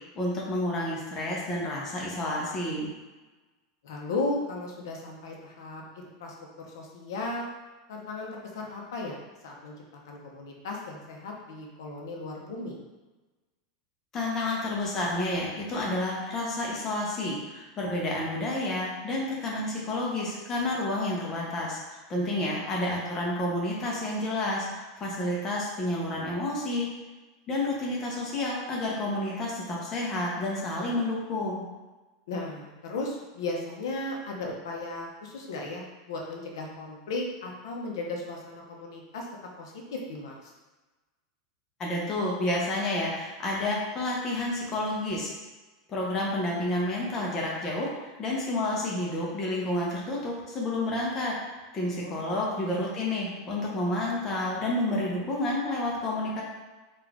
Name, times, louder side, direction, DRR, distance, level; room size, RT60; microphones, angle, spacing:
voice 1, 0.1-2.9 14.1-26.9 27.5-31.6 41.8-45.3 45.9-51.4 51.7-56.4, left 1 dB, 20° left, -4 dB, 0.7 m, -30 dB
voice 2, 3.8-7.5 7.9-9.2 9.4-9.7 10.1-12.8 22.2-22.6 32.3-39.3 39.6-40.5 52.0-52.3, left 2 dB, 85° left, 0 dB, 0.8 m, -36 dB
3.6 x 2.4 x 3.5 m, 1.2 s
supercardioid pair, 170°, 2 cm